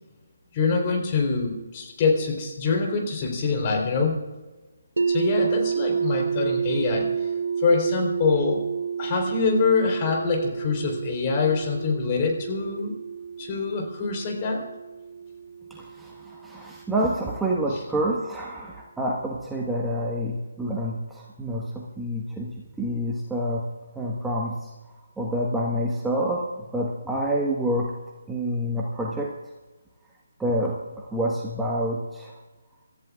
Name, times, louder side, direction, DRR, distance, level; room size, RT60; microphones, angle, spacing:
voice 1, 0.5-4.2 5.1-7.3 7.6-8.6 9.0-13.0 13.4-14.6, left 4 dB, 30° left, 1 dB, 3.8 m, -25 dB
sound 1, 5.0-16.9, right 6 dB, 75° right, 1.0 m, -30 dB
voice 2, 15.7-23.6 23.9-24.7 25.2-26.5 26.7-27.9 28.3-29.3 30.4-32.3, equal, 5° right, -3 dB, 1.4 m, -28 dB
27.5 x 14.0 x 2.4 m, 1.2 s
figure-of-eight pair, 150°, 0 cm